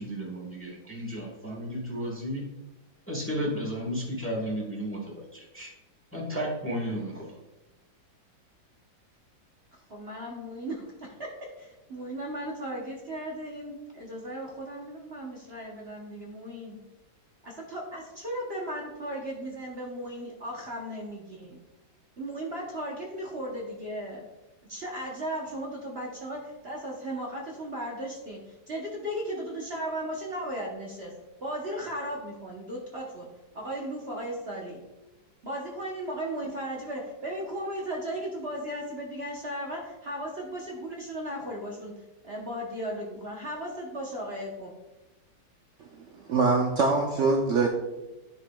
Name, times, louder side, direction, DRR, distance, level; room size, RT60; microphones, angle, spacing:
voice 1, 0.0-2.4 3.1-5.7 6.1-7.4, equal, 10° left, -1 dB, 1.0 m, -33 dB
voice 2, 9.7-16.8 17.4-21.6 22.2-24.2 24.7-31.1 31.4-33.3 33.5-34.8 35.4-44.7, right 1 dB, 45° right, -2 dB, 0.9 m, -36 dB
voice 3, 45.8-47.7, right 3 dB, 80° right, 1 dB, 0.6 m, -24 dB
10.0 x 4.8 x 2.3 m, 1.0 s
omnidirectional pair, 2.1 m